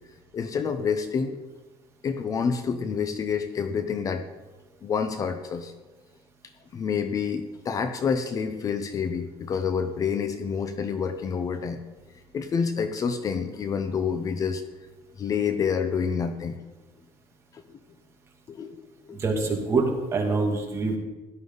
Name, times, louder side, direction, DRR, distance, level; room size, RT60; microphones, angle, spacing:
voice 1, 0.3-1.4 2.0-4.3 4.8-5.7 6.7-11.8 12.3-14.6 15.2-16.6 17.5-17.8 18.5-19.2 19.7-19.8, left 6 dB, 35° left, 9 dB, 0.9 m, -28 dB
voice 2, 19.1-21.0, right 3 dB, 25° right, 0 dB, 2.5 m, -25 dB
17.0 x 11.5 x 4.0 m, 1.2 s
cardioid pair, 155°, 10 cm